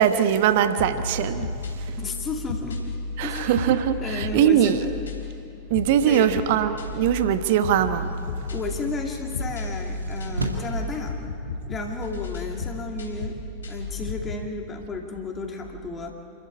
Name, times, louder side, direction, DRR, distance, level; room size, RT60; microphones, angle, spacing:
voice 1, 0.0-1.5 1.8-2.0 3.2-4.8 5.7-8.1, right 10 dB, 50° right, 10 dB, 1.2 m, -21 dB
sound 1, 0.8-14.5, left 4 dB, 70° left, 3.4 m, -33 dB
voice 2, 2.0-2.9 3.2-4.9 6.1-6.4 8.5-11.2 11.7-13.3 13.7-16.1, left 3 dB, 20° left, 2 dB, 2.4 m, -33 dB
sound 2, 7.6-11.0, right 3 dB, 80° right, 2.2 m, -35 dB
28.0 x 14.0 x 8.5 m, 2.5 s
figure-of-eight pair, 90°, 0 cm